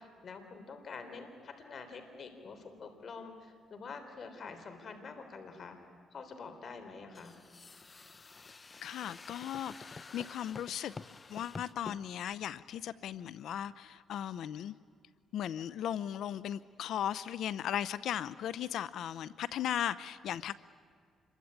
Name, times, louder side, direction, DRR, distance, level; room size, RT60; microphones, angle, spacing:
voice 1, 0.0-5.8 6.1-7.3, left 4 dB, 50° left, 7 dB, 3.7 m, -47 dB
sound 1, 7.1-12.0, left 4 dB, 30° left, 0.7 m, -49 dB
voice 2, 8.8-10.9 11.3-14.7 15.3-20.5, left 10 dB, 75° left, 17 dB, 0.7 m, -37 dB
27.0 x 23.0 x 9.7 m, 2.1 s
cardioid pair, 90°, 0 cm